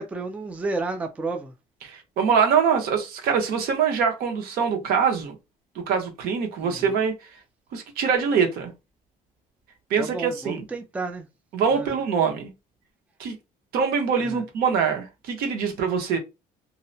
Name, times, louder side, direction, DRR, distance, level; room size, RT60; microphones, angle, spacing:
voice 1, 0.0-1.5 6.6-6.9 10.0-11.3 11.7-11.9 14.2-14.4, right 3 dB, 10° right, 0.3 m, -31 dB
voice 2, 1.8-5.3 5.9-7.2 7.7-8.7 9.9-10.6 11.5-12.5 13.2-13.4 13.7-16.2, right 6 dB, 75° right, 0.9 m, -23 dB
2.7 x 2.1 x 2.6 m
cardioid pair, 140°, 16 cm